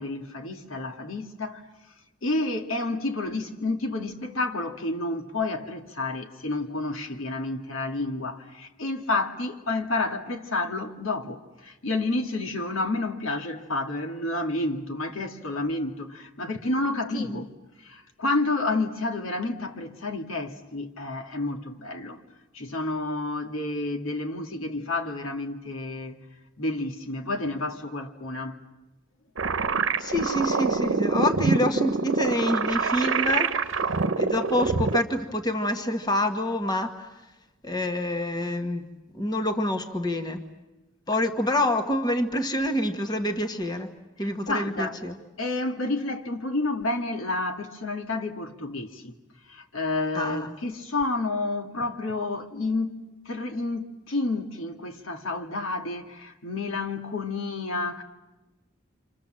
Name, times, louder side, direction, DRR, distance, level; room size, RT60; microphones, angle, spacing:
voice 1, 0.0-1.7 2.2-17.5 17.8-22.2 22.5-26.2 26.6-28.6 44.2-45.0 45.4-49.1 49.5-53.0 53.3-58.0, left 2 dB, 85° left, 2.2 m, -30 dB
sound 1, 29.4-35.0, right 4 dB, 75° right, 1.0 m, -25 dB
voice 2, 30.0-33.6 34.2-37.1 37.6-38.9 39.1-40.4 41.1-43.9 44.2-45.1 50.1-50.5, left 1 dB, 20° left, 1.4 m, -27 dB
28.5 x 26.0 x 7.6 m
head